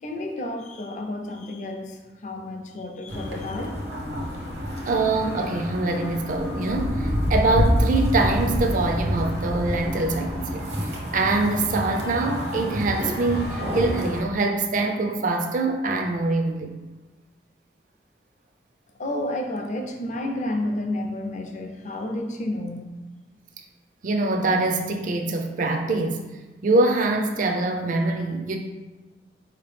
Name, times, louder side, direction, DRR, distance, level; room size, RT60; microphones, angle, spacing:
voice 1, 0.0-3.8 19.0-23.0, left 1 dB, 45° left, 3 dB, 0.5 m, -31 dB
sound 1, 3.1-14.2, equal, 70° right, 0.9 m, -27 dB
voice 2, 4.9-10.6 11.1-16.7 24.0-26.2 26.6-28.6, right 2 dB, 45° right, 3 dB, 0.4 m, -24 dB
4.4 x 2.9 x 3.3 m, 1.2 s
head